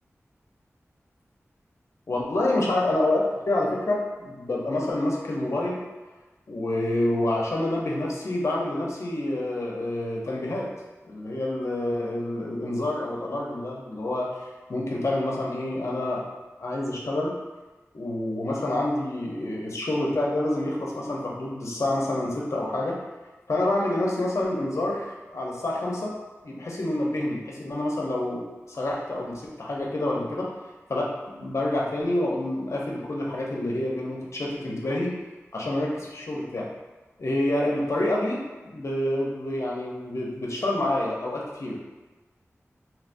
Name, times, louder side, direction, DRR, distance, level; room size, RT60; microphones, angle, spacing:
voice 1, 2.1-5.8 6.5-10.7 11.0-14.3 14.7-16.2 16.6-17.3 17.9-23.0 23.5-26.1 26.4-30.5 30.9-35.1 35.5-36.7 37.2-41.8, left 1 dB, 65° left, -3 dB, 0.7 m, -27 dB
3.2 x 2.9 x 2.6 m, 1.2 s
wide cardioid pair, 50°, 5 cm